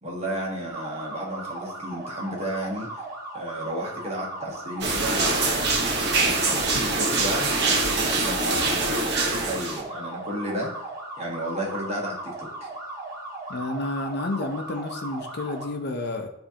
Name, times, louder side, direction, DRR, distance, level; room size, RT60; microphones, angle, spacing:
voice 1, 0.0-3.0 3.3-5.7 6.2-10.7 11.2-12.7, equal, 35° right, -2 dB, 1.5 m, -33 dB
sound 1, 0.7-15.7, right 2 dB, 15° right, 1.4 m, -37 dB
sound 2, 4.8-9.8, right 3 dB, 55° right, 1.0 m, -24 dB
voice 2, 13.5-16.3, left 2 dB, 55° left, 6 dB, 0.6 m, -30 dB
9.8 x 3.4 x 2.8 m, 0.78 s
head